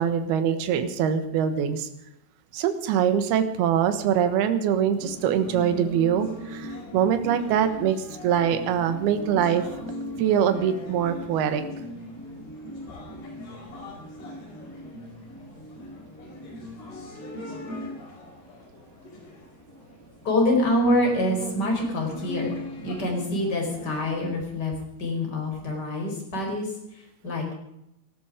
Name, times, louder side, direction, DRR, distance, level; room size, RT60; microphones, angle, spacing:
voice 1, 0.0-1.9 2.5-8.0 8.2-9.6 10.2-11.6, right 8 dB, 65° right, 9 dB, 2.7 m, -23 dB
sound 1, 5.0-24.2, left 1 dB, 55° left, 6.6 m, -39 dB
voice 2, 20.2-22.5 22.8-24.7 25.0-27.5, left 1 dB, 20° left, 1 dB, 4.8 m, -26 dB
18.5 x 13.0 x 5.0 m, 0.81 s
omnidirectional pair, 5.8 m